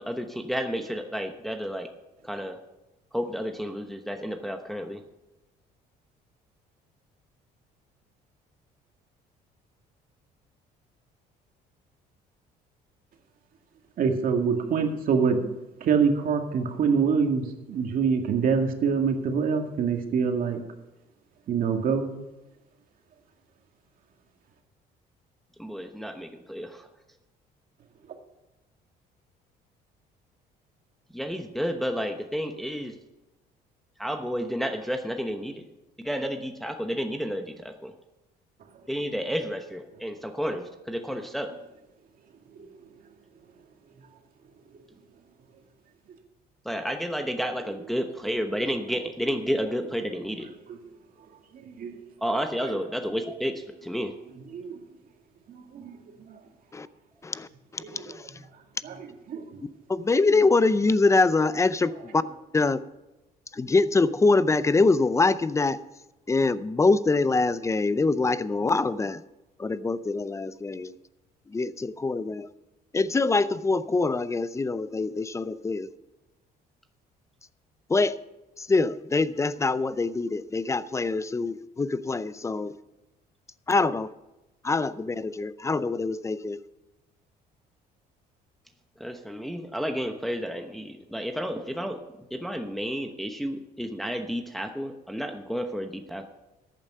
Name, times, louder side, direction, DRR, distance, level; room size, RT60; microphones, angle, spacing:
voice 1, 0.0-1.9 2.2-2.6 3.1-5.0 25.6-26.9 31.1-32.9 34.0-35.6 36.0-37.9 38.9-41.5 46.7-50.5 52.2-54.1 89.0-92.0 92.3-96.3, equal, ahead, 5 dB, 0.9 m, -31 dB
voice 2, 14.0-15.4 15.8-17.4 17.7-20.6 21.5-22.1 51.7-51.9 54.5-54.7 55.5-55.9 57.9-58.0 58.8-58.9 59.3-59.4, right 6 dB, 55° right, 4 dB, 2.1 m, -25 dB
voice 3, 57.7-58.2 59.9-62.2 62.5-62.8 63.5-65.8 66.3-69.2 69.6-70.9 71.5-72.5 72.9-75.9 77.9-78.2 78.6-82.7 83.7-84.1 84.6-86.6, left 3 dB, 15° left, 16 dB, 0.5 m, -24 dB
14.0 x 9.0 x 5.5 m, 1.0 s
cardioid pair, 110°, 17 cm